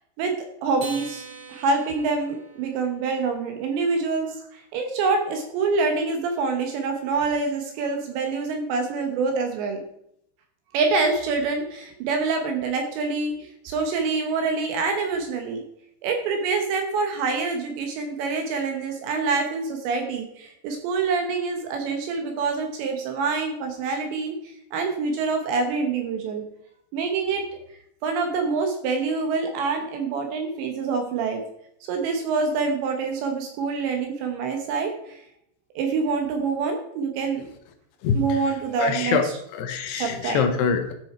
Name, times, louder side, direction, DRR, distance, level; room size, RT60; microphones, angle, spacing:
voice 1, 0.2-1.2 1.5-9.8 10.7-15.6 16.0-26.4 26.9-27.5 28.0-31.4 31.9-35.2 35.8-37.5 38.1-39.2 40.0-40.4, right 4 dB, 75° right, 4 dB, 3.1 m, -26 dB
Acoustic guitar, 0.8-3.4, right 4 dB, 45° right, 2.0 m, -42 dB
voice 2, 38.0-40.9, left 6 dB, 75° left, 7 dB, 2.5 m, -25 dB
13.5 x 6.3 x 4.3 m, 0.74 s
omnidirectional pair, 5.7 m